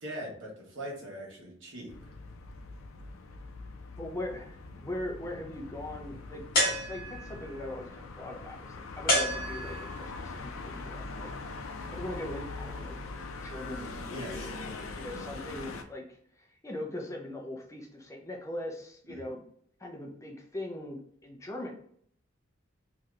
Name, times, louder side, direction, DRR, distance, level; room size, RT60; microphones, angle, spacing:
voice 1, 0.0-1.9 14.1-14.5 19.1-19.3, equal, 65° right, -2 dB, 1.1 m, -41 dB
sound 1, 1.9-15.8, left 3 dB, 85° left, 0.4 m, -42 dB
voice 2, 4.0-11.3 11.7-13.0 13.4-16.0 16.4-19.4 19.8-21.7, left 1 dB, 15° left, 0 dB, 0.4 m, -40 dB
sound 2, 6.5-7.4 9.1-10.1, equal, 45° left, 1.0 m, -28 dB
3.2 x 2.7 x 2.4 m, 0.63 s
head